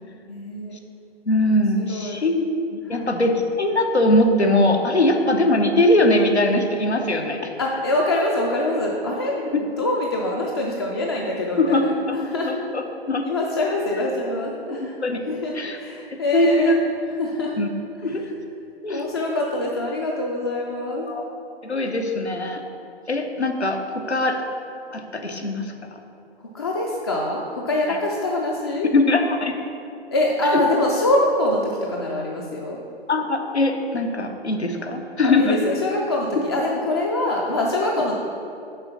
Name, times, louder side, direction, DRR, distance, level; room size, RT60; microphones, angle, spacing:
voice 1, 0.3-0.8 1.9-2.2 2.9-3.1 7.6-12.5 13.2-14.9 15.3-16.8 17.1-17.6 18.9-21.1 26.5-28.9 30.1-32.8 34.8-35.0 35.2-38.1, left 1 dB, 25° left, -1 dB, 0.4 m, -24 dB
voice 2, 1.3-2.4 2.7-7.5 11.6-13.2 14.8-15.8 16.1-16.8 17.6-17.7 18.0-18.2 18.8-19.1 21.1-21.3 21.6-22.6 23.1-24.4 24.9-26.0 27.9-28.0 28.9-29.5 30.5-30.6 33.1-35.6, left 1 dB, 85° left, 4 dB, 0.9 m, -21 dB
6.7 x 4.9 x 5.7 m, 2.6 s
figure-of-eight pair, 125°, 32 cm